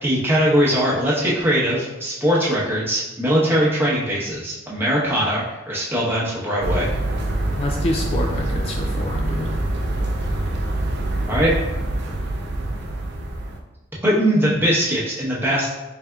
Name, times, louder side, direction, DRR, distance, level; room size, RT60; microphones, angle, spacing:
voice 1, 0.0-6.9 11.3-11.5 14.0-15.7, equal, 10° right, -7 dB, 0.9 m, -20 dB
sound 1, 6.6-13.6, right 1 dB, 60° right, 0.5 m, -25 dB
voice 2, 7.6-9.6, left 1 dB, 30° left, 1 dB, 0.3 m, -27 dB
4.1 x 3.5 x 2.3 m, 1.1 s
head